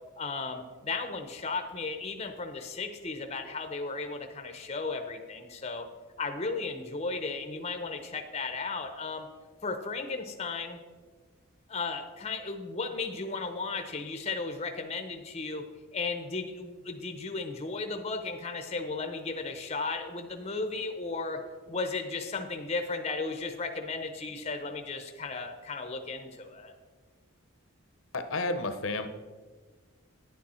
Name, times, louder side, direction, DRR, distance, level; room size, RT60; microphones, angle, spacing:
voice 1, 0.2-5.9 6.2-9.3 9.6-10.8 11.7-15.6 15.9-21.4 21.7-26.7, left 3 dB, 30° left, 6 dB, 0.6 m, -35 dB
voice 2, 28.1-29.1, left 2 dB, 65° left, 9 dB, 0.7 m, -31 dB
10.0 x 8.7 x 4.3 m, 1.5 s
head